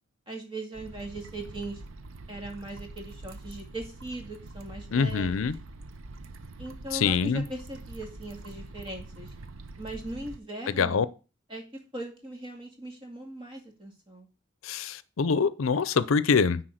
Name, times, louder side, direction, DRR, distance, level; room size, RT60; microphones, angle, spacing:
voice 1, 0.3-1.8 2.3-5.5 6.6-9.3 9.8-11.0 11.5-11.6 11.9-14.3, right 1 dB, 25° right, 2.2 m, -39 dB
sound 1, 0.7-10.4, right 2 dB, 85° right, 0.8 m, -45 dB
voice 2, 4.9-5.5 6.9-7.4 10.7-11.1 14.6-16.6, left 5 dB, 85° left, 0.5 m, -25 dB
9.9 x 4.2 x 6.4 m
head